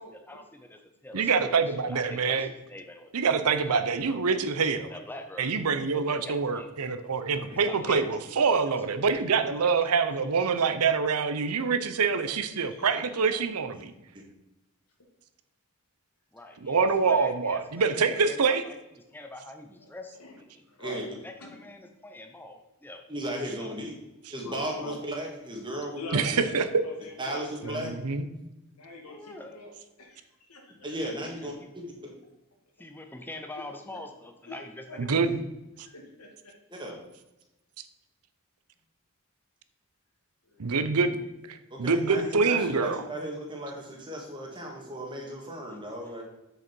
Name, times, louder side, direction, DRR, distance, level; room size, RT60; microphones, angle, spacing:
voice 1, 0.0-3.1 3.4-4.4 4.9-5.5 5.9-6.7 7.5-8.3 8.7-8.8 9.1-9.7 12.2-12.4 16.3-17.9 18.3-18.8 19.1-20.6 21.2-23.0 23.6-23.8 29.0-29.6 31.0-31.1 31.4-31.7 32.8-34.8 35.2-35.3 42.3-42.5 46.0-46.1, left 2 dB, 10° left, 5 dB, 0.6 m, -44 dB
voice 2, 1.1-2.5 3.1-4.9 5.4-13.9 16.6-18.6 26.1-26.8 27.6-28.3 35.0-35.4 35.8-35.9 40.6-43.0, right 5 dB, 90° right, 11 dB, 0.7 m, -26 dB
voice 3, 12.4-13.0 13.3-13.4 17.8-18.3 19.8-19.9 20.2-20.3 20.7-21.0 21.4-21.6 24.4-25.0 25.9-27.8 28.7-29.7 30.0-30.7 33.5-33.6 33.9-34.0 34.4-34.6 34.9-35.0 35.8-36.5 40.4-40.7 42.5-43.0, left 2 dB, 90° left, 1 dB, 2.3 m, -44 dB
voice 4, 23.1-23.9 24.3-26.2 27.2-27.9 30.8-32.1 36.7-37.0 41.7-46.2, right 1 dB, 20° right, 0 dB, 1.8 m, -35 dB
8.0 x 6.6 x 4.5 m, 0.95 s
head